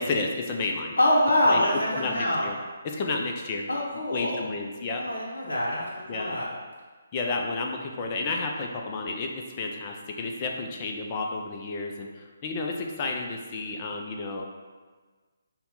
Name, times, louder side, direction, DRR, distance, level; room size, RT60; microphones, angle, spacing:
voice 1, 0.0-0.9 1.5-1.6 1.9-2.5 2.8-3.7 4.1-5.0 6.1-6.3 7.1-14.5, left 3 dB, 30° left, 1 dB, 0.5 m, -31 dB
voice 2, 1.0-2.5 3.7-4.4 5.0-6.5, left 1 dB, 65° left, -6 dB, 0.8 m, -25 dB
5.6 x 2.2 x 4.0 m, 1.4 s
figure-of-eight pair, 140°, 0 cm